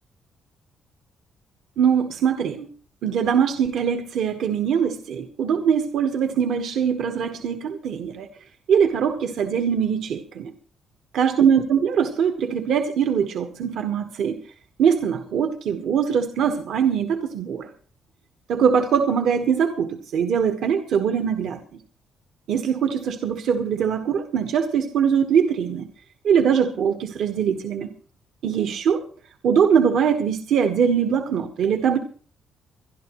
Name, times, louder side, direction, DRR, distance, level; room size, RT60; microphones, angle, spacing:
voice 1, 1.8-2.7 3.0-8.3 8.7-10.5 11.1-14.4 14.8-17.7 18.5-21.6 22.5-25.9 26.2-27.9 28.4-29.0 29.4-32.0, right 7 dB, 75° right, 5 dB, 1.4 m, -22 dB
24.0 x 11.5 x 3.1 m, 0.43 s
cardioid pair, 90°, 0 cm